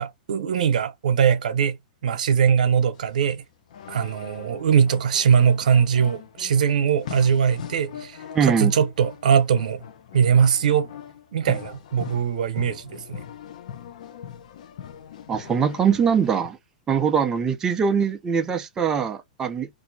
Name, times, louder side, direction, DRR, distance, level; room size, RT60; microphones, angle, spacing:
voice 1, 0.0-1.8 2.0-3.4 3.9-9.8 10.1-10.9 11.3-13.2, right 7 dB, 80° right, 0.9 m, -21 dB
sound 1, 2.9-16.5, left 9 dB, 70° left, 0.6 m, -40 dB
voice 2, 8.3-8.7 15.3-16.6 16.9-19.7, right 7 dB, 15° right, 0.4 m, -22 dB
2.7 x 2.6 x 4.0 m
hypercardioid pair, 150°, 4 cm